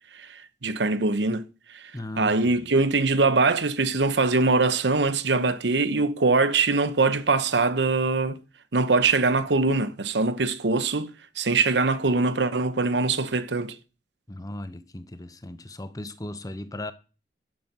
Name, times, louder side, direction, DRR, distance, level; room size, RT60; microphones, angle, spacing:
voice 1, 0.1-1.4 1.7-1.9 2.2-8.4 8.7-13.8, right 3 dB, 75° right, 0.9 m, -23 dB
voice 2, 1.9-2.7 14.3-16.9, left 1 dB, 20° left, 0.8 m, -37 dB
11.0 x 7.0 x 6.0 m
head